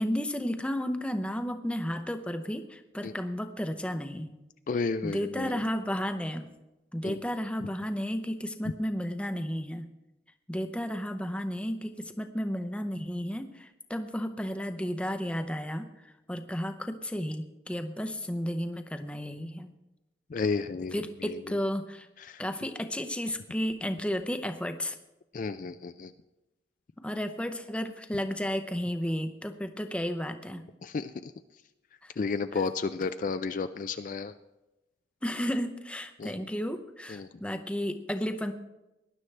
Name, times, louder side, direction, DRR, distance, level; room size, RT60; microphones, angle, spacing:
voice 1, 0.0-4.3 5.0-6.5 6.9-9.9 10.5-19.7 20.9-22.1 22.4-25.0 27.0-30.7 32.0-32.1 32.5-32.6 35.2-38.5, equal, 5° left, 8 dB, 0.7 m, -33 dB
voice 2, 4.7-5.6 7.0-7.2 20.3-21.6 22.2-22.4 25.3-26.1 30.8-31.3 32.2-34.3 36.2-36.3 37.1-37.3, left 4 dB, 45° left, 10 dB, 0.3 m, -32 dB
19.0 x 11.0 x 3.3 m, 0.99 s
head